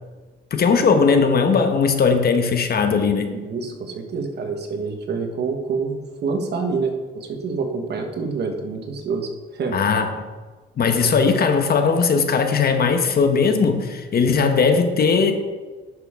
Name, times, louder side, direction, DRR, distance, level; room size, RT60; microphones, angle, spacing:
voice 1, 0.5-3.3 9.7-10.3 10.8-15.3, left 5 dB, 50° left, 6 dB, 1.1 m, -18 dB
voice 2, 3.3-9.8, right 4 dB, 60° right, 4 dB, 1.4 m, -27 dB
10.5 x 6.5 x 3.7 m, 1.3 s
cardioid pair, 90°, 20 cm